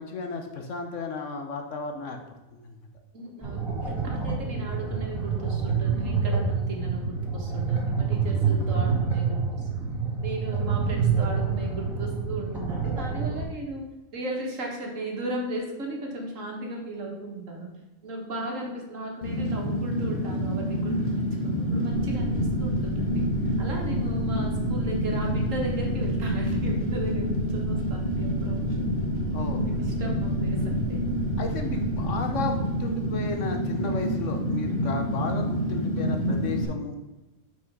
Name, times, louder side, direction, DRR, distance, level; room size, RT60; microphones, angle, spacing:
voice 1, 0.0-2.2 2.5-2.8 29.3-29.6 31.4-37.0, left 3 dB, 60° left, 4 dB, 1.2 m, -34 dB
voice 2, 3.1-9.4 9.7-9.9 10.2-13.8 14.1-17.7 18.0-20.9 21.4-23.2 23.6-28.9 29.6-30.6 30.9-31.0, right 2 dB, 60° right, 0 dB, 1.8 m, -36 dB
sound 1, 3.4-13.4, right 5 dB, ahead, 1.8 m, -27 dB
Fire, 19.2-36.6, equal, 40° left, 1.8 m, -28 dB
sound 2, 21.9-35.1, equal, 35° right, 2.1 m, -34 dB
6.0 x 5.3 x 5.3 m, 1.1 s
omnidirectional pair, 1.5 m